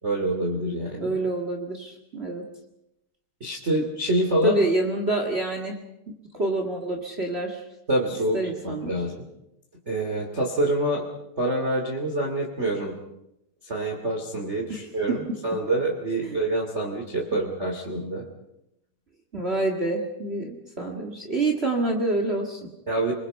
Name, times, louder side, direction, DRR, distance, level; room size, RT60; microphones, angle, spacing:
voice 1, 0.0-1.1 3.4-4.6 7.9-9.3 9.9-11.0 11.4-12.9 13.6-18.2 22.9-23.1, right 1 dB, 20° right, -1 dB, 2.2 m, -26 dB
voice 2, 1.0-2.4 4.4-5.8 6.3-7.6 8.3-8.9 14.7-14.8 16.2-16.4 19.3-22.7, right 2 dB, 50° right, 2 dB, 0.7 m, -27 dB
29.0 x 21.5 x 5.5 m, 0.84 s
omnidirectional pair, 4.7 m